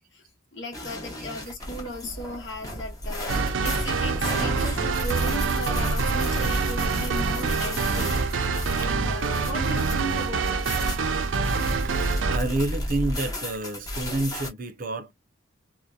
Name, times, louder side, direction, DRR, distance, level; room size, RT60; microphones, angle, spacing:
voice 1, 0.5-8.1 8.8-10.9, equal, 70° left, 0.8 m, -36 dB
sound 1, 0.7-14.5, left 1 dB, 20° left, 0.8 m, -33 dB
sound 2, 3.3-12.4, right 4 dB, 90° right, 0.5 m, -26 dB
voice 2, 11.8-15.1, right 2 dB, 45° right, 0.6 m, -29 dB
2.7 x 2.1 x 2.2 m
head